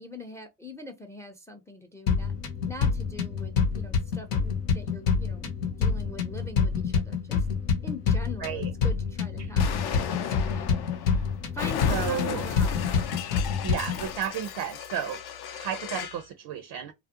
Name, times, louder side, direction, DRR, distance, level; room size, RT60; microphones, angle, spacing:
voice 1, 0.0-2.3 2.6-7.5 7.8-11.1 11.5-12.9, left 1 dB, 5° left, 0.4 m, -43 dB
sound 1, 2.1-14.1, left 6 dB, 80° left, 0.8 m, -27 dB
voice 2, 8.4-8.7 9.4-9.5 11.9-12.4 13.6-15.2 15.5-16.9, right 9 dB, 55° right, 0.5 m, -33 dB
Explosion, 9.6-16.2, left 9 dB, 55° left, 0.6 m, -35 dB
2.4 x 2.0 x 2.7 m
supercardioid pair, 75°, 48 cm